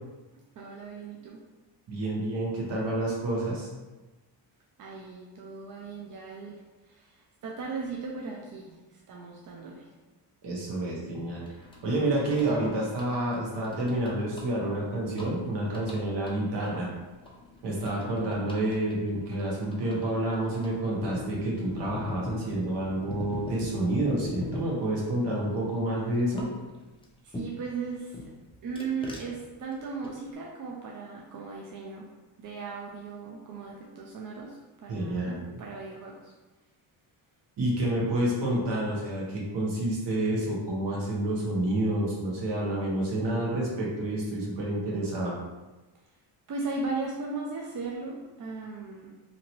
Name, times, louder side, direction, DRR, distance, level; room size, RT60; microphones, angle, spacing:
voice 1, 0.6-1.4 4.8-8.8 9.1-9.9 27.2-28.3 28.6-32.1 32.4-36.3 46.5-49.1, right 4 dB, 45° right, -2 dB, 0.5 m, -37 dB
voice 2, 1.9-3.7 10.4-11.4 11.8-16.9 17.6-26.5 34.9-35.4 37.6-45.3, right 1 dB, 60° right, -3 dB, 1.1 m, -29 dB
sound 1, 11.4-27.7 28.1-30.3, left 2 dB, 15° left, 0.4 m, -43 dB
2.9 x 2.6 x 2.9 m, 1.1 s
cardioid pair, 125°, 46 cm